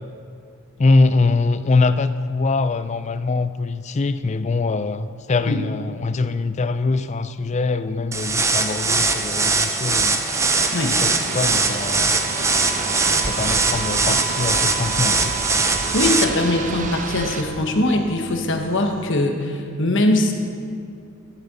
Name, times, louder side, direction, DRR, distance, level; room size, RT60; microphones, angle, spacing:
voice 1, 0.8-10.2 10.8-12.2 13.3-15.3, left 3 dB, 30° left, 12 dB, 0.4 m, -23 dB
sound 1, 8.1-16.2, right 3 dB, 15° right, 0.6 m, -21 dB
sound 2, 10.3-17.4, right 3 dB, 35° right, 0.8 m, -31 dB
sound 3, 11.3-19.1, right 10 dB, 55° right, 0.3 m, -35 dB
voice 2, 15.9-20.3, left 1 dB, 55° left, 3 dB, 1.4 m, -21 dB
13.0 x 11.0 x 5.5 m, 2.5 s
head